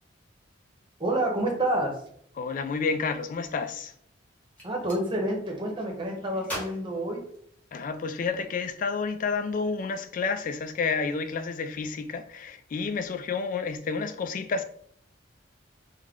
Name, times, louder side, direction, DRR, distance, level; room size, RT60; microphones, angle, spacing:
voice 1, 1.0-2.0 4.6-7.2, right 1 dB, 25° right, 0.8 m, -28 dB
voice 2, 2.4-3.9 7.7-14.6, left 4 dB, 45° left, 0.3 m, -30 dB
Gunshot gunfire, 4.5-5.0 6.4-7.9, equal, 10° left, 1.1 m, -40 dB
3.6 x 2.1 x 3.5 m
head